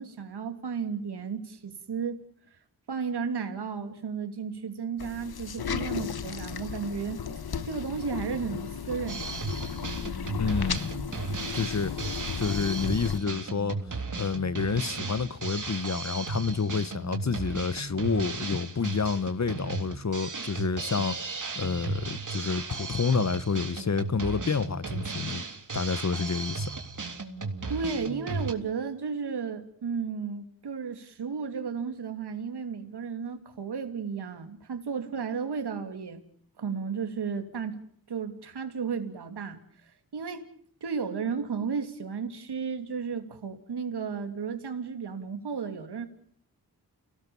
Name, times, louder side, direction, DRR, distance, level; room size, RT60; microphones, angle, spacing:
voice 1, 0.0-2.2 2.9-7.2 7.6-9.5 27.7-36.2 36.6-37.8 38.1-40.5 40.8-46.1, right 6 dB, 85° right, 3.0 m, -33 dB
sound 1, 5.0-13.2, left 7 dB, 70° left, 1.4 m, -35 dB
Drum kit, 9.1-28.5, right 4 dB, 50° right, 3.4 m, -35 dB
voice 2, 10.3-10.9 11.5-11.9 12.4-25.4 25.7-26.8, left 5 dB, 45° left, 1.2 m, -29 dB
29.5 x 18.0 x 7.1 m
cardioid pair, 60°, 39 cm